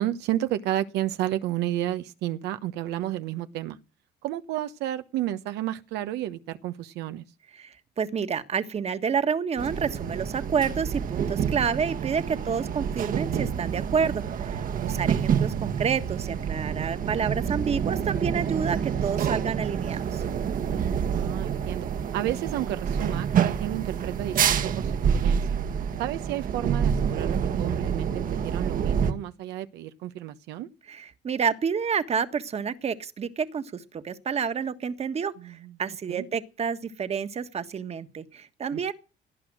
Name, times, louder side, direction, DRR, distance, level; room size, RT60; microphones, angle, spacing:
voice 1, 0.0-3.8 4.2-7.2 12.3-12.7 14.6-15.0 21.1-21.9 22.1-25.4 26.0-30.7 35.4-35.7 36.1-36.3 38.7-38.9, right 13 dB, 85° right, 1.1 m, -32 dB
voice 2, 7.5-20.2 30.9-38.9, right 6 dB, 40° right, 1.6 m, -29 dB
sound 1, 9.6-29.1, right 7 dB, 55° right, 1.6 m, -27 dB
18.5 x 11.0 x 6.3 m
cardioid pair, 110°, 17 cm